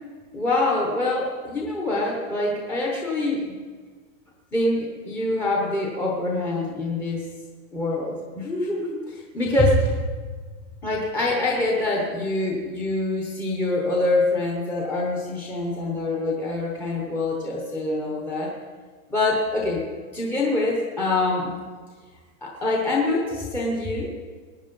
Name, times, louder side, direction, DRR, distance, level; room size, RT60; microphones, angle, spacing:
voice 1, 0.3-3.5 4.5-7.3 7.7-10.0 10.8-18.5 19.1-19.9 20.1-21.5 22.4-24.2, left 2 dB, 5° left, -3 dB, 0.7 m, -25 dB
20.0 x 9.5 x 5.3 m, 1.5 s
supercardioid pair, 180°, 41 cm